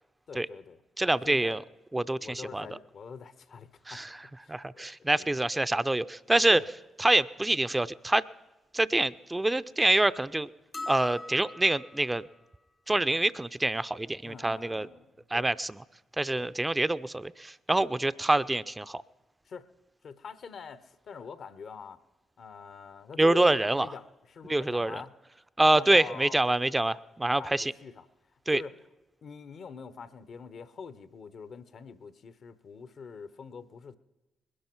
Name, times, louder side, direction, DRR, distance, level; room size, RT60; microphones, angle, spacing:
voice 1, 0.3-0.8 1.2-1.6 2.2-4.0 4.4-4.9 5.2-5.4 6.5-6.7 14.2-15.5 16.3-16.5 19.5-19.6 20.0-22.0 22.4-25.1 25.6-26.4 27.3-28.1 28.5-28.8 29.2-34.0, left 5 dB, 60° left, 14 dB, 0.9 m, -44 dB
voice 2, 1.0-1.6 1.9-2.7 3.9-4.2 4.5-6.6 7.0-8.2 8.7-10.5 10.9-12.2 12.9-14.9 15.3-15.8 16.2-19.0 23.2-23.9 24.5-25.0 25.6-27.7 28.5-28.6, right 2 dB, 20° right, 15 dB, 0.5 m, -26 dB
sound 1, 10.7-12.1, left 2 dB, 30° left, 0.6 m, -39 dB
21.0 x 11.0 x 4.5 m, 1.0 s
hypercardioid pair, 40°, 0 cm